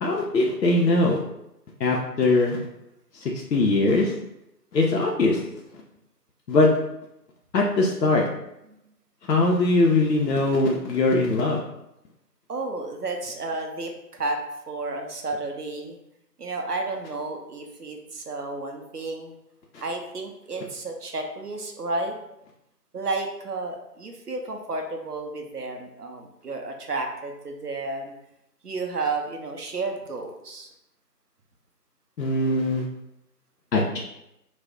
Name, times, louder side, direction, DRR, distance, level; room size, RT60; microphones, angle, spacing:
voice 1, 0.0-1.2 1.8-2.6 3.1-4.1 4.7-5.4 6.5-6.7 7.5-8.2 9.3-11.6 19.7-19.8 32.2-32.8 33.7-34.0, left 2 dB, 75° left, -2 dB, 0.5 m, -21 dB
voice 2, 12.5-14.4 14.7-16.0 16.4-19.3 19.8-22.1 22.9-28.1 28.6-30.7, right 3 dB, 65° right, 3 dB, 0.6 m, -32 dB
2.3 x 2.0 x 3.4 m, 0.85 s
figure-of-eight pair, 175°, 50 cm